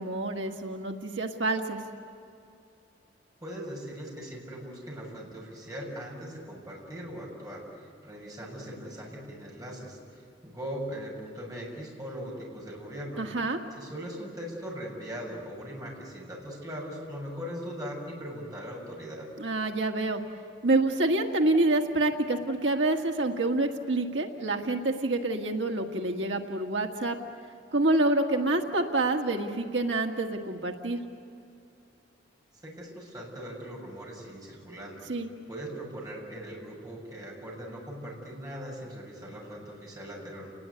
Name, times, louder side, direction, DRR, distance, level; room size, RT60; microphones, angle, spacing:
voice 1, 0.0-1.8 13.2-13.6 19.4-20.2 20.6-27.2 27.7-31.0 35.1-35.3, right 2 dB, 85° right, 3 dB, 1.8 m, -27 dB
voice 2, 3.4-13.3 13.8-19.3 32.6-35.1 35.5-40.5, equal, 20° right, -2 dB, 7.1 m, -40 dB
30.0 x 20.0 x 9.6 m, 2.6 s
head